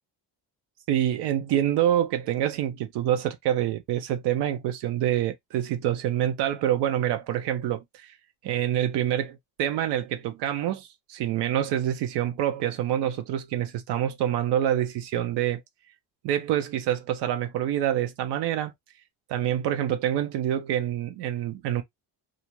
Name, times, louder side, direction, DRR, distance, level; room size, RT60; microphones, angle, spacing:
voice 1, 0.9-8.2 8.4-15.6 16.2-18.7 19.3-21.8, right 11 dB, 85° right, 0.5 m, -26 dB
2.5 x 2.1 x 2.9 m
cardioid pair, 135°, 41 cm